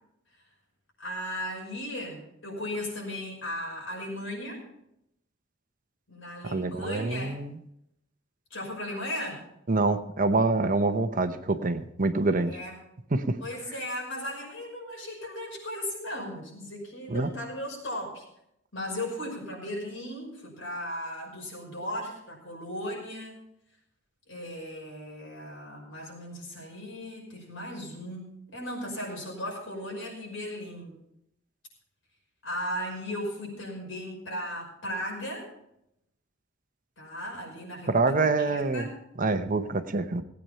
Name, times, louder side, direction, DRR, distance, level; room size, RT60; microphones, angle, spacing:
voice 1, 1.0-4.6 6.1-7.4 8.5-9.4 12.5-12.8 13.4-18.2 18.7-23.4 24.3-30.9 32.4-35.5 37.0-38.9, left 1 dB, 75° left, -1 dB, 5.8 m, -36 dB
voice 2, 6.4-7.6 9.7-12.6 13.1-13.4 17.1-17.3 37.9-38.9 39.2-40.2, right 3 dB, 45° right, 10 dB, 0.8 m, -26 dB
17.0 x 9.1 x 5.6 m, 0.80 s
head